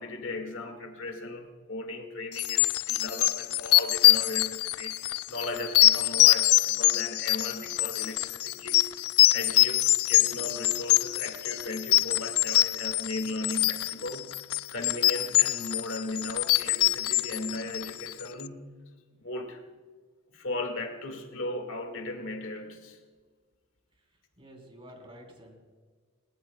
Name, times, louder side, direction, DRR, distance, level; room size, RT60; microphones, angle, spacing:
voice 1, 0.0-8.9 9.3-14.4 14.7-18.7 19.2-19.6 20.3-23.0, left 2 dB, 65° left, 5 dB, 1.9 m, -37 dB
sound 1, 2.4-18.2, left 17 dB, 90° left, 0.4 m, -24 dB
voice 2, 23.9-25.6, equal, 25° right, 1 dB, 3.4 m, -51 dB
21.0 x 19.0 x 2.2 m, 1.5 s
head